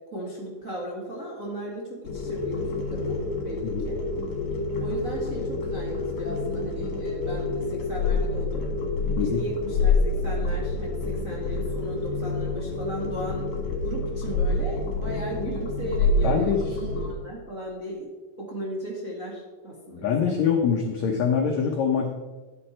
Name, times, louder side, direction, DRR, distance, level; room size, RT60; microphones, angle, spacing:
voice 1, 0.1-4.0 4.8-8.7 9.2-13.5 13.8-18.1 18.4-20.3, right 1 dB, 30° right, -4 dB, 1.6 m, -36 dB
sound 1, 2.0-17.1, left 3 dB, 55° left, 3.3 m, -27 dB
voice 2, 16.2-16.6 20.0-22.1, left 7 dB, 75° left, 2 dB, 1.7 m, -24 dB
13.0 x 9.8 x 4.4 m, 1.3 s
omnidirectional pair, 4.4 m